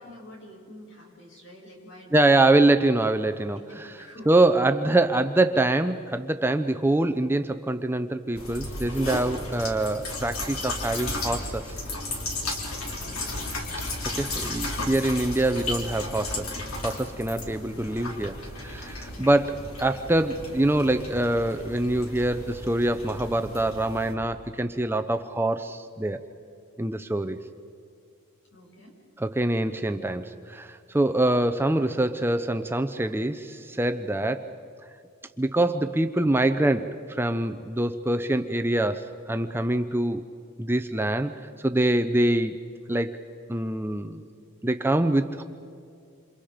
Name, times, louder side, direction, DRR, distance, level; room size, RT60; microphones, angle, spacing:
voice 1, 0.0-2.3 3.7-4.3 12.8-13.3 28.5-28.9, left 1 dB, 60° left, -1 dB, 6.9 m, -47 dB
voice 2, 2.1-3.9 4.3-11.8 14.1-16.5 16.8-26.2 26.8-27.4 29.2-34.5 35.4-40.3 40.6-41.3 41.6-42.6 42.9-43.2 43.5-44.2 44.6-45.4, right 2 dB, 10° right, 9 dB, 0.6 m, -24 dB
sound 1, 8.3-24.1, left 2 dB, 80° left, 3.7 m, -34 dB
28.0 x 27.5 x 5.1 m, 2.5 s
head